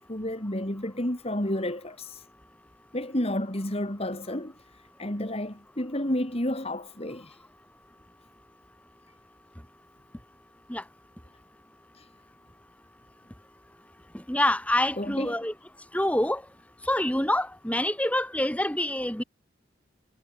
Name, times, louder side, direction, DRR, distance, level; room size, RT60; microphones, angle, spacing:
voice 1, 0.1-2.2 2.9-4.5 5.0-7.3 15.0-15.4, left 1 dB, 30° left, 3.1 m, -30 dB
voice 2, 14.3-15.5 15.9-16.4 16.9-19.2, left 1 dB, 5° left, 3.1 m, -26 dB
head